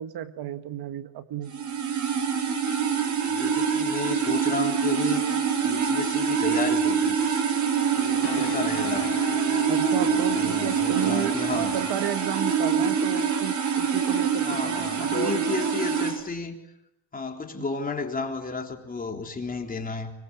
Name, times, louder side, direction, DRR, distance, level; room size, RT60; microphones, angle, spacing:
voice 1, 0.0-1.5 9.7-15.5 17.6-17.7, right 11 dB, 60° right, 10 dB, 1.8 m, -33 dB
sound 1, 1.5-16.2, right 7 dB, 40° right, 4.7 m, -25 dB
voice 2, 3.3-5.2 5.6-7.2 8.0-9.1 10.1-11.7 14.4-16.6 17.1-20.1, left 4 dB, 20° left, 4 dB, 3.6 m, -32 dB
sound 2, 8.0-15.1, left 12 dB, 70° left, 3.4 m, -40 dB
25.0 x 24.0 x 9.8 m, 0.84 s
cardioid pair, 150°, 43 cm